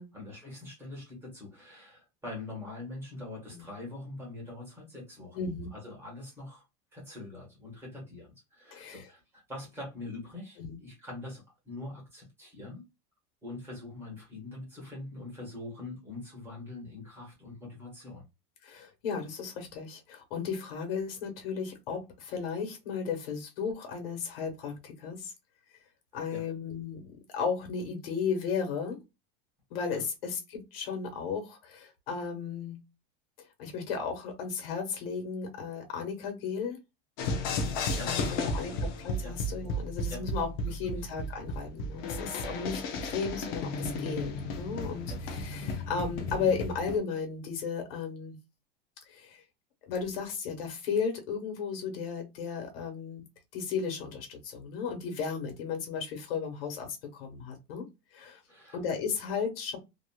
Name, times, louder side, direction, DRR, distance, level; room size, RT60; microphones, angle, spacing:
voice 1, 0.1-5.4 5.7-6.6 6.9-12.8 13.4-18.2 26.3-26.4 29.9-30.0 37.6-38.9 39.2-39.3 40.1-40.2 40.8-40.9 42.5-42.6 43.1-43.2 45.1-45.2 58.5-58.8, left 2 dB, 10° right, 1.2 m, -43 dB
voice 2, 5.3-5.7 8.7-9.1 10.6-10.8 18.6-25.3 26.1-29.0 29.7-32.8 33.6-36.8 38.0-48.4 49.1-49.4 49.9-53.3 53.5-58.4 58.7-59.8, left 6 dB, 75° left, 1.3 m, -35 dB
sound 1, 37.2-47.0, left 2 dB, 30° left, 0.4 m, -34 dB
2.9 x 2.5 x 2.2 m
supercardioid pair, 180°, 29 cm